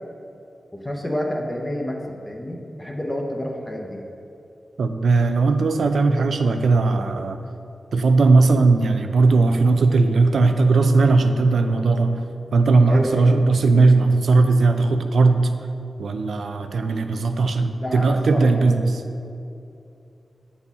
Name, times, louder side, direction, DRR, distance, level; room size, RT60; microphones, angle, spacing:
voice 1, 0.7-2.0 2.3-4.0 12.9-13.5 17.8-18.9 19.2-19.3, equal, 10° left, 0 dB, 0.5 m, -29 dB
voice 2, 4.8-7.4 7.9-12.1 12.5-15.5 16.0-18.8, right 3 dB, 90° right, 7 dB, 0.4 m, -18 dB
8.2 x 4.1 x 3.5 m, 2.6 s
wide cardioid pair, 170°, 0 cm